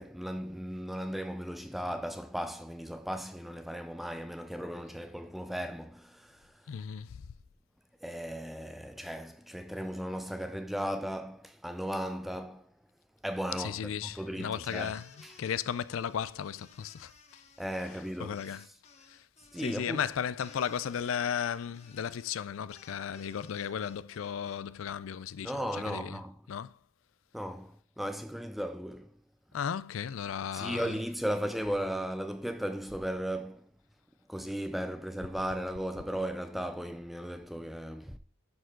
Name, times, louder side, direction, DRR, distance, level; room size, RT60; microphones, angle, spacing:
voice 1, 0.0-6.6 8.0-12.7 13.2-14.9 15.2-15.3 17.6-18.4 19.5-20.0 25.4-26.3 27.3-29.1 30.5-33.7 34.3-38.2, equal, ahead, 0.4 m, -36 dB
voice 2, 6.7-7.2 13.6-15.1 15.4-17.4 18.2-18.7 19.1-19.3 19.6-26.2 26.5-26.8 29.5-31.0, left 8 dB, 85° left, 0.4 m, -35 dB
sound 1, 14.7-24.6, left 4 dB, 30° left, 0.9 m, -57 dB
11.0 x 4.6 x 3.8 m
head